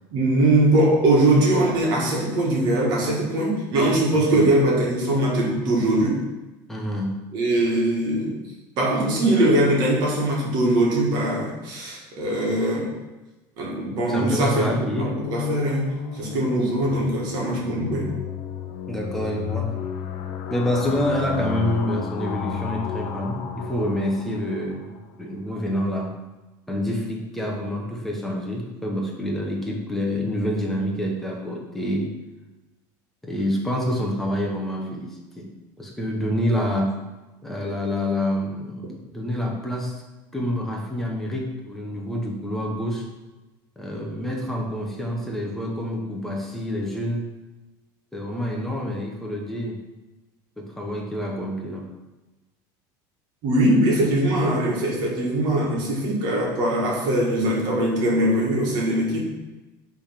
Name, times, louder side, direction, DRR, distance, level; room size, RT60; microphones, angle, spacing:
voice 1, 0.1-6.2 7.3-8.4 8.8-12.9 13.6-18.1 53.4-59.3, right 1 dB, 45° right, -3 dB, 1.7 m, -21 dB
voice 2, 4.1-4.5 6.7-7.2 14.1-15.2 18.9-19.7 20.5-26.1 26.7-32.1 33.2-35.5 35.8-37.0 37.4-40.0 40.3-43.1 43.8-47.3 48.1-49.8 50.6-51.9, equal, 5° left, -1 dB, 0.8 m, -27 dB
sound 1, 14.2-25.0, left 8 dB, 50° left, 0.5 m, -33 dB
5.3 x 3.5 x 5.7 m, 1.1 s
cardioid pair, 170°, 10 cm